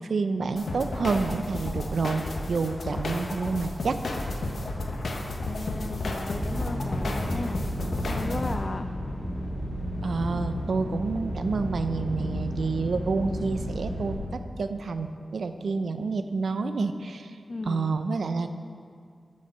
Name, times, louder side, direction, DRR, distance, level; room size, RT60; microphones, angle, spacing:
voice 1, 0.0-4.0 10.0-17.4 17.6-18.6, right 4 dB, 80° right, 9 dB, 0.6 m, -29 dB
sound 1, 0.6-8.5, left 2 dB, 80° left, 1.2 m, -32 dB
voice 2, 5.4-7.6 8.1-8.8 17.5-18.0, left 2 dB, 40° left, 7 dB, 0.4 m, -35 dB
sound 2, 6.4-14.1, equal, 5° right, 2.1 m, -32 dB
11.5 x 6.5 x 6.7 m, 2.2 s
wide cardioid pair, 95°, 0 cm